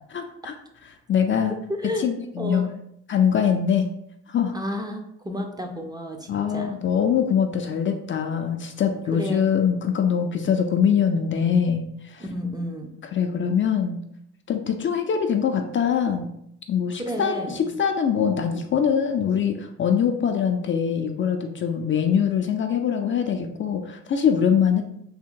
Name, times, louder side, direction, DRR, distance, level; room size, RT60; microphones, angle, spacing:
voice 1, 0.1-0.5 1.1-1.5 2.0-2.7 3.1-3.9 4.3-4.5 6.3-12.2 13.1-14.0 14.5-16.3 16.7-24.8, left 7 dB, 40° left, 5 dB, 0.4 m, -23 dB
voice 2, 4.5-6.8 9.1-9.4 12.2-12.9 17.0-17.6, equal, 15° right, 3 dB, 0.5 m, -31 dB
3.5 x 2.2 x 3.7 m, 0.75 s
cardioid pair, 90°, 30 cm